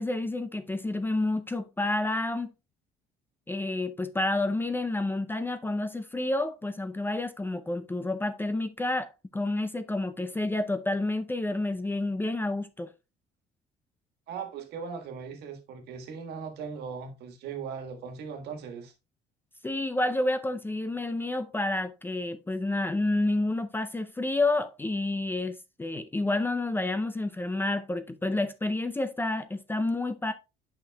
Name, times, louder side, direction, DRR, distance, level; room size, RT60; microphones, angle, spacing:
voice 1, 0.0-2.5 3.5-12.9 19.6-30.3, left 2 dB, 10° left, 0.5 m, -29 dB
voice 2, 14.3-18.9, right 6 dB, 75° right, 1.5 m, -39 dB
9.0 x 5.8 x 2.2 m
cardioid pair, 110°, 17 cm